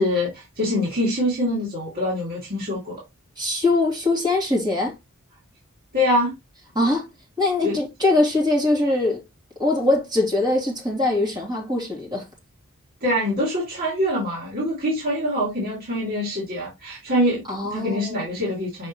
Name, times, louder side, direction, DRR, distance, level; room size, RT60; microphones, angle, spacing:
voice 1, 0.0-3.0 5.9-6.4 7.6-7.8 13.0-18.9, left 1 dB, 45° right, 2.8 m, -24 dB
voice 2, 3.4-4.9 6.7-7.1 7.4-9.2 9.6-12.2 17.5-18.4, left 2 dB, 20° right, 3.0 m, -22 dB
6.5 x 5.2 x 3.0 m
head